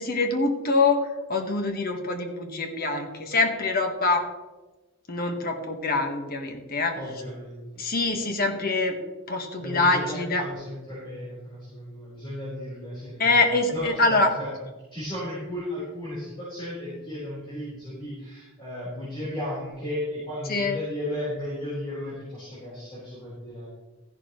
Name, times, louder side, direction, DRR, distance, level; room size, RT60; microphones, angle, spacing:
voice 1, 0.0-4.3 5.1-7.0 7.8-9.0 9.3-10.4 13.2-14.3 20.5-20.8, left 3 dB, 45° left, 3 dB, 1.5 m, -24 dB
voice 2, 6.9-7.8 9.6-13.2 13.7-14.5 14.9-23.7, left 1 dB, 25° left, -10 dB, 4.4 m, -35 dB
13.5 x 11.0 x 3.2 m, 1.2 s
head